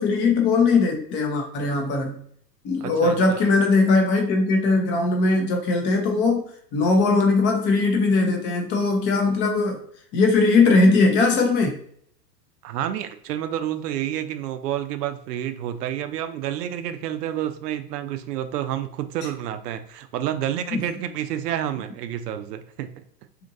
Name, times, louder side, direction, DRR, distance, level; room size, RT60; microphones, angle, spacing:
voice 1, 0.0-2.2 2.6-6.4 6.7-9.8 10.1-11.8 20.7-20.8, left 3 dB, 25° left, 2 dB, 0.5 m, -20 dB
voice 2, 2.8-3.5 12.6-23.0, right 11 dB, 70° right, 9 dB, 0.5 m, -29 dB
2.8 x 2.5 x 2.6 m, 0.63 s
hypercardioid pair, 105°, 50 cm